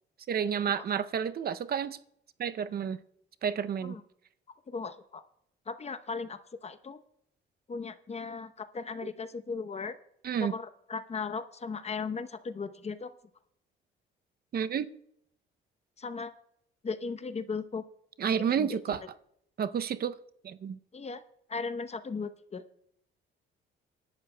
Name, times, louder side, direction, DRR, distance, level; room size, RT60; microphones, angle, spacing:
voice 1, 0.3-2.0 2.4-3.0 3.4-4.0 10.2-10.5 14.5-14.9 18.2-19.0 19.6-20.2 20.4-20.8, right 8 dB, 50° right, 0.6 m, -30 dB
voice 2, 4.7-5.2 5.7-7.0 7.7-10.0 10.4-13.1 16.0-16.3 16.8-17.8 18.5-19.0 20.9-21.2 21.5-22.6, left 4 dB, 35° left, 0.8 m, -37 dB
27.0 x 11.5 x 2.2 m
cardioid pair, 90°, 20 cm